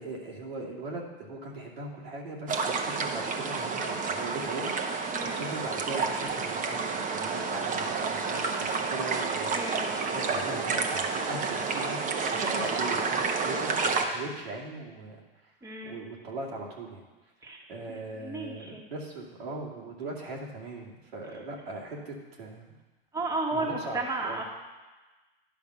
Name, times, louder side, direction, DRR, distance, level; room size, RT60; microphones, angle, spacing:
voice 1, 0.0-5.0 5.4-15.5 15.9-17.0 17.7-22.7 23.5-24.4, right 2 dB, 90° right, -2 dB, 2.3 m, -39 dB
sound 1, 2.5-14.1, right 4 dB, 25° right, 1.0 m, -30 dB
voice 2, 9.5-10.0 15.6-16.0 17.4-17.6 17.9-18.8 23.1-24.4, right 2 dB, 10° right, -1 dB, 1.4 m, -33 dB
10.5 x 5.2 x 6.0 m, 1.2 s
hypercardioid pair, 110°, 30 cm